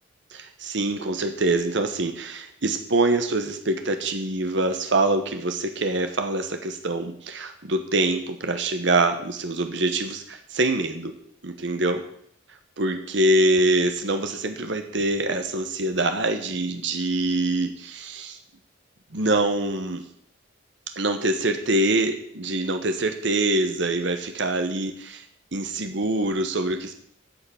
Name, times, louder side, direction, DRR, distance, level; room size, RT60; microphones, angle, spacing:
voice 1, 0.3-11.1 11.4-12.0 12.8-18.4 19.1-20.0 21.0-25.2 25.5-27.0, right 2 dB, 60° right, 6 dB, 1.1 m, -24 dB
10.5 x 5.8 x 8.4 m, 0.67 s
head